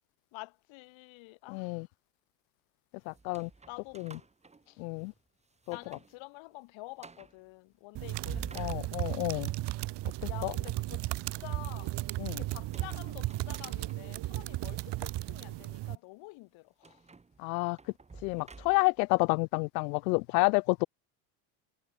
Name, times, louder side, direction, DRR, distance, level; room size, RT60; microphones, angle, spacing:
voice 1, 0.3-1.9 3.7-4.0 4.7-4.8 5.7-9.0 10.3-11.1 11.4-12.0 12.3-17.0, left 24 dB, 65° left, 6.5 m, -49 dB
voice 2, 1.5-1.8 3.1-3.5 4.8-5.1 5.7-5.8 8.6-9.5 10.4-10.5 12.2-12.4 17.4-17.8 18.2-20.9, left 29 dB, 90° left, 0.6 m, -29 dB
sound 1, 3.1-5.2 5.6-6.2 6.5-6.6 7.0-7.4 8.0-9.4 12.5-14.3 14.9-15.1 16.8-19.1, right 4 dB, 15° right, 2.1 m, -50 dB
sound 2, 8.0-16.0, right 17 dB, 55° right, 3.3 m, -35 dB
supercardioid pair, 120°, 49 cm